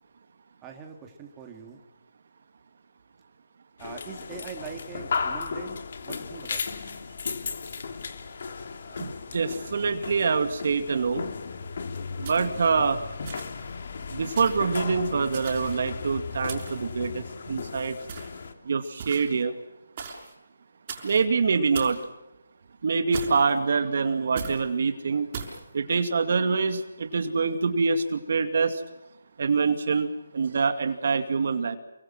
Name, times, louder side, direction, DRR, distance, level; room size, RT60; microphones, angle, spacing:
voice 1, 0.6-1.8 3.8-6.7, right 7 dB, 15° right, 3 dB, 2.9 m, -42 dB
sound 1, 3.8-18.5, left 5 dB, 50° left, 3.1 m, -35 dB
voice 2, 8.9-11.3 12.2-13.0 14.1-18.0 18.6-19.5 21.0-22.0 22.8-25.3 25.7-28.8 29.4-31.8, right 5 dB, 55° right, 8 dB, 2.4 m, -25 dB
sound 2, 12.2-12.7 13.2-13.7 14.4-14.7 15.3-15.9 16.5-16.9 18.1-18.4 19.0-19.4 20.0-20.3 20.9-21.2 21.7-22.0 23.1-23.6 24.4-24.6 25.3-25.6, right 5 dB, 35° right, 5.9 m, -38 dB
29.5 x 24.0 x 6.1 m, 0.94 s
hypercardioid pair, 160°, 0 cm